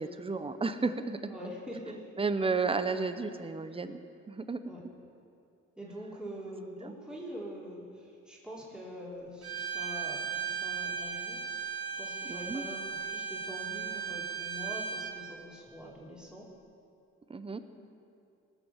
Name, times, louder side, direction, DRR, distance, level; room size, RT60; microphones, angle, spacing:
voice 1, 0.0-1.3 2.2-4.0 4.3-4.6 6.8-6.9 12.3-12.6 17.3-17.6, right 4 dB, 20° right, 10 dB, 0.8 m, -32 dB
voice 2, 1.3-2.0 4.7-4.8 5.8-16.5, equal, 5° right, -5 dB, 3.2 m, -44 dB
Bowed string instrument, 9.4-15.2, right 7 dB, 50° right, 2.5 m, -36 dB
19.0 x 6.9 x 6.5 m, 2.5 s
cardioid pair, 90°, 30 cm